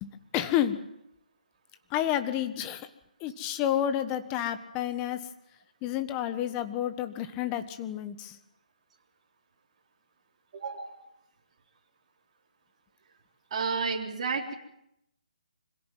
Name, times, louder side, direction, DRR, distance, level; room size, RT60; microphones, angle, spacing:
voice 1, 0.0-0.8 1.9-2.9 3.2-5.2 5.8-8.4, left 11 dB, 20° left, 10 dB, 1.4 m, -30 dB
voice 2, 10.5-11.0 13.5-14.5, right 5 dB, 40° right, 0 dB, 3.9 m, -31 dB
25.5 x 17.0 x 9.3 m, 0.80 s
hypercardioid pair, 160°, 5 cm